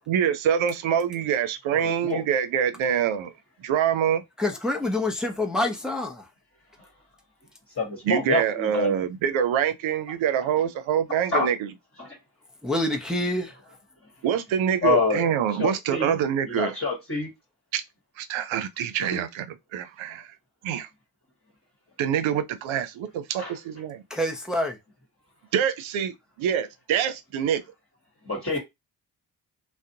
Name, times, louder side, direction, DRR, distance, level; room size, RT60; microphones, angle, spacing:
voice 1, 0.1-3.3 3.6-4.2 8.1-11.6 14.2-16.7 17.7-17.8 18.2-19.5 19.7-20.3 20.6-20.9 22.0-24.0 25.5-27.6, right 8 dB, 75° right, 0.6 m, -25 dB
voice 2, 1.7-2.2 6.8-6.9 7.8-9.0 11.3-11.5 12.0-12.2 14.8-15.3 15.6-16.2 16.4-17.3 19.0-19.2 20.1-20.2 23.4-23.6 28.2-28.6, left 3 dB, 30° left, 1.2 m, -27 dB
voice 3, 4.4-6.3 12.6-13.6 24.1-24.8, left 1 dB, ahead, 0.7 m, -26 dB
2.4 x 2.1 x 2.7 m
supercardioid pair, 45°, 48 cm